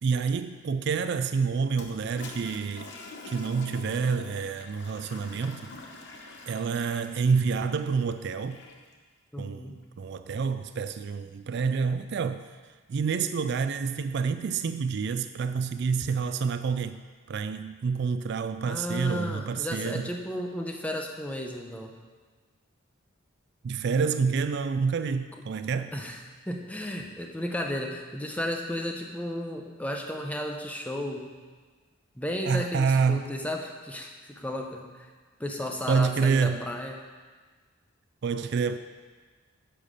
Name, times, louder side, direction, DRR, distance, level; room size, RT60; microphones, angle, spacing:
voice 1, 0.0-2.9 3.3-5.7 6.5-8.6 9.4-12.4 12.9-17.0 17.3-20.1 23.6-25.9 32.4-33.3 35.9-36.6 38.2-38.8, right 5 dB, 55° right, 0.3 m, -28 dB
Toilet flush, 1.7-8.9, left 3 dB, 55° left, 1.0 m, -46 dB
voice 2, 9.3-9.8 18.6-21.9 25.9-31.3 32.2-35.1 35.4-37.0, left 1 dB, 5° left, 0.8 m, -34 dB
10.0 x 5.7 x 6.6 m
head